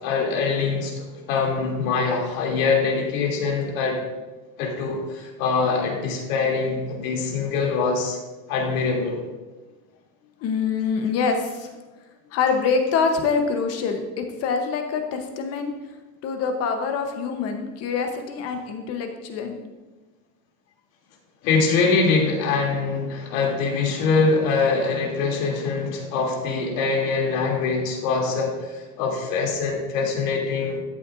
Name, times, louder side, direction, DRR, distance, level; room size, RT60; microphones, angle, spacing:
voice 1, 0.0-4.0 4.6-8.2 8.5-9.2 21.4-30.8, left 4 dB, 65° left, -1 dB, 2.9 m, -23 dB
voice 2, 10.4-11.7 12.3-15.7 16.2-19.5, left 5 dB, 35° left, 5 dB, 0.9 m, -25 dB
13.0 x 8.4 x 2.6 m, 1.2 s
supercardioid pair, 165°, 44 cm